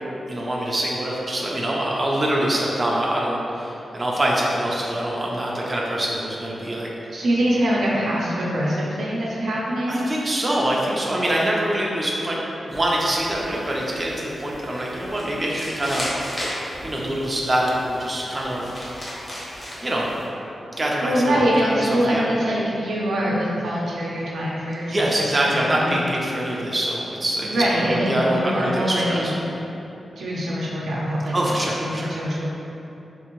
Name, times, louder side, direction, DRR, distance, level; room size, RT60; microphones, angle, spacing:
voice 1, 0.3-6.9 9.9-12.4 12.7-16.1 16.8-18.7 19.8-20.1 20.8-22.2 24.9-29.3 31.3-32.1, right 1 dB, 25° right, -4 dB, 0.5 m, -24 dB
voice 2, 7.1-10.1 21.0-25.9 27.4-29.3 30.2-32.4, equal, 90° right, -5 dB, 0.6 m, -24 dB
sound 1, 12.7-20.2, equal, 30° left, 1.0 m, -36 dB
3.6 x 2.6 x 2.9 m, 3.0 s
wide cardioid pair, 105°, 0 cm